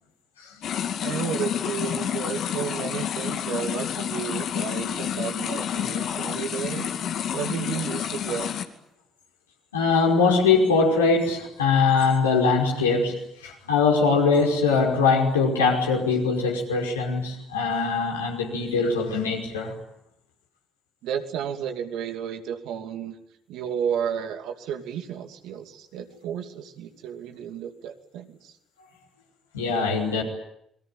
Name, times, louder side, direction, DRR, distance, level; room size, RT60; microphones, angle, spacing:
sound 1, 0.6-8.6, left 9 dB, 60° left, 2.4 m, -29 dB
voice 1, 1.0-6.9 7.3-8.5 21.0-23.2 23.5-28.5, right 8 dB, 70° right, 6 dB, 2.6 m, -32 dB
voice 2, 9.7-19.7 29.5-30.2, left 4 dB, 85° left, -1 dB, 5.4 m, -22 dB
29.5 x 22.5 x 9.0 m, 0.77 s
hypercardioid pair, 45°, 0 cm